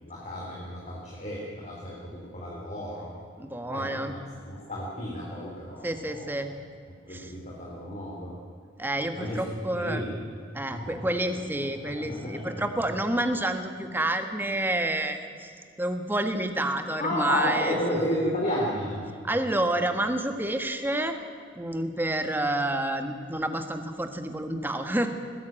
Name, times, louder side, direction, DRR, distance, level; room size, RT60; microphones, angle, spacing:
voice 1, 0.0-3.1 3.7-4.2 4.5-6.3 7.1-8.4 9.2-9.4 9.7-10.1 10.7-12.6 17.0-19.1, left 1 dB, 40° left, -4 dB, 3.7 m, -33 dB
voice 2, 3.4-4.1 5.8-6.5 7.1-7.3 8.8-10.0 10.5-15.5 15.8-18.4 19.2-21.2 21.5-25.1, right 1 dB, 10° right, 7 dB, 1.4 m, -29 dB
20.5 x 15.5 x 9.0 m, 2.2 s
head